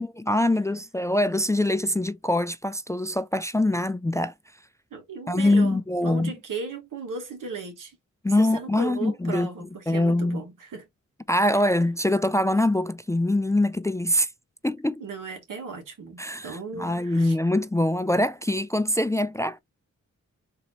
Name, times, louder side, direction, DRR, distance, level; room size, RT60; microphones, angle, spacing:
voice 1, 0.0-4.3 5.3-6.3 8.2-9.5 9.9-10.4 11.3-14.3 14.6-15.0 16.2-19.6, left 1 dB, 10° left, 0.3 m, -24 dB
voice 2, 4.9-8.0 8.4-10.9 15.0-17.4, right 4 dB, 90° right, 1.4 m, -36 dB
3.9 x 2.9 x 3.0 m
cardioid pair, 60°, 31 cm